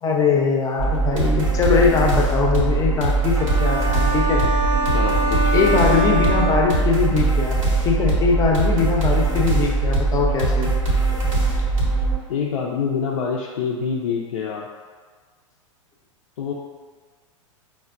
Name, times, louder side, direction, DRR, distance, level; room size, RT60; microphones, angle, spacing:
voice 1, 0.0-4.5 5.5-7.6 7.8-10.7, left 5 dB, 20° left, 0 dB, 0.5 m, -21 dB
sound 1, 0.8-12.1, right 3 dB, 90° right, 0.9 m, -21 dB
sound 2, 3.4-7.2, right 1 dB, 65° right, 0.6 m, -25 dB
voice 2, 4.9-5.6 12.3-14.7 16.4-16.5, left 6 dB, 80° left, -3 dB, 0.4 m, -26 dB
4.5 x 2.1 x 2.4 m, 1.5 s
hypercardioid pair, 105°, 17 cm